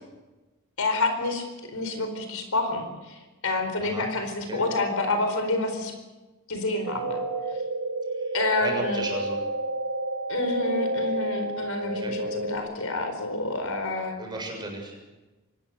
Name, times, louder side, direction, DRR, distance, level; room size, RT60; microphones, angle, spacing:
voice 1, 0.8-3.2 3.4-5.9 6.5-7.2 8.3-9.0 10.3-14.2, left 2 dB, 80° left, 6 dB, 4.5 m, -28 dB
sound 1, 6.8-12.6, right 2 dB, 75° right, 2.1 m, -30 dB
voice 2, 8.6-9.4 12.0-12.1 14.2-14.9, right 2 dB, 20° right, 0 dB, 6.9 m, -34 dB
24.5 x 19.5 x 6.9 m, 1.1 s
head